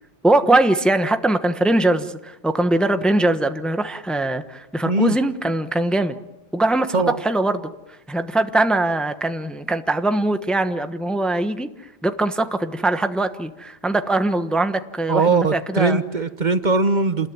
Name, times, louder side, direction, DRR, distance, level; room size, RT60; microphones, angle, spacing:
voice 1, 0.2-6.2 6.5-7.7 8.1-11.7 12.0-16.0, right 2 dB, ahead, 8 dB, 1.1 m, -21 dB
voice 2, 4.8-5.2 6.9-7.2 15.1-17.3, right 3 dB, 45° right, 10 dB, 1.2 m, -20 dB
28.5 x 20.5 x 9.5 m, 0.97 s
omnidirectional pair, 1.1 m